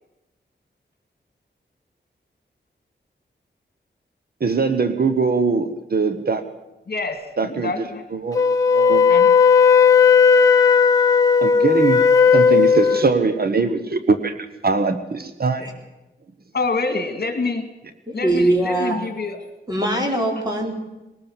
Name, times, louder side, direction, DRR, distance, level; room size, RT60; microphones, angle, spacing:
voice 1, 4.4-6.4 7.4-7.7 8.1-8.4 8.7-9.1 11.4-12.0 12.3-15.7, right 4 dB, 55° right, 9 dB, 1.2 m, -21 dB
voice 2, 6.9-8.1 9.1-9.4 16.5-17.7 18.1-19.4, left 3 dB, 55° left, 7 dB, 2.1 m, -26 dB
Wind instrument woodwind instrument, 8.3-13.1, left 6 dB, 20° left, 1.7 m, -14 dB
voice 3, 18.1-19.0 19.7-20.7, right 1 dB, 20° right, 1 dB, 4.5 m, -21 dB
21.0 x 18.5 x 7.3 m, 1.0 s
wide cardioid pair, 125°, 19 cm